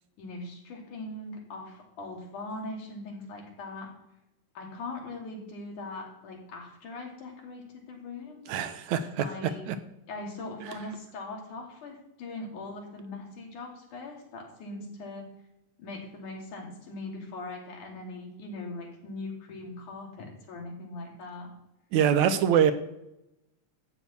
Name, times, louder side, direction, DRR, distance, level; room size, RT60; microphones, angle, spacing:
voice 1, 0.2-3.9 4.5-8.6 9.2-9.7 10.1-15.3 15.8-21.5, left 2 dB, 90° left, 0 dB, 4.3 m, -40 dB
voice 2, 8.5-9.8 10.7-10.8 21.9-22.7, right 8 dB, 75° right, 10 dB, 2.2 m, -24 dB
13.0 x 6.2 x 8.4 m, 0.87 s
omnidirectional pair, 3.4 m